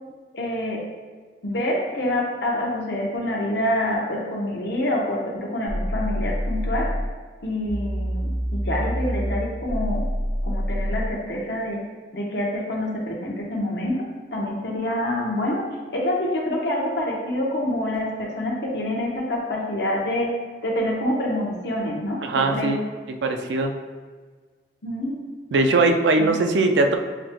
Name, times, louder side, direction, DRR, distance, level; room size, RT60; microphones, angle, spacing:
voice 1, 0.3-0.8 1.4-6.9 7.4-10.0 10.4-11.8 12.1-14.0 14.3-15.6 15.9-20.3 20.6-22.8 24.8-25.2 26.2-26.3, left 1 dB, 70° left, -2 dB, 0.9 m, -26 dB
sound 1, 5.7-7.1 7.7-11.1, equal, 20° left, 0.7 m, -26 dB
voice 2, 22.2-22.8 23.2-23.7 25.5-27.0, right 3 dB, 85° right, 5 dB, 0.4 m, -20 dB
7.1 x 3.0 x 2.2 m, 1.5 s
head